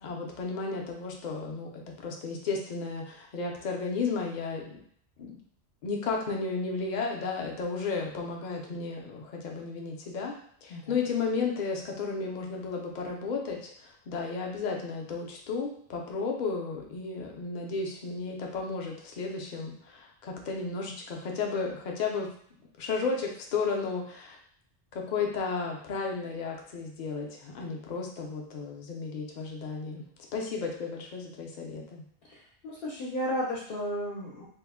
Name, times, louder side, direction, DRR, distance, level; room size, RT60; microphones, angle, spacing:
voice 1, 0.0-4.8 5.2-5.4 5.8-10.3 10.6-22.3 22.8-24.4 24.9-30.0 30.3-32.0, left 4 dB, 55° left, 0 dB, 0.6 m, -33 dB
voice 2, 32.2-34.4, equal, 70° left, -5 dB, 0.9 m, -34 dB
2.9 x 2.0 x 3.5 m, 0.66 s
omnidirectional pair, 1.1 m